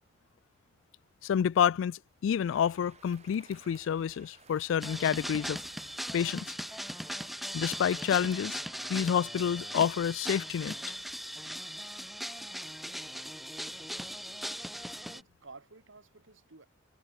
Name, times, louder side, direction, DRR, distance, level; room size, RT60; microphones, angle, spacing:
voice 1, 1.2-5.6 6.1-6.5 7.5-8.6 8.9-10.7, left 8 dB, 70° left, 0.3 m, -29 dB
sound 1, 1.7-8.9, right 8 dB, 55° right, 3.3 m, -65 dB
sound 2, 2.4-9.5, right 5 dB, 35° right, 7.3 m, -59 dB
sound 3, 4.8-15.2, equal, ahead, 1.2 m, -39 dB
voice 2, 15.1-16.7, right 3 dB, 75° right, 2.0 m, -54 dB
head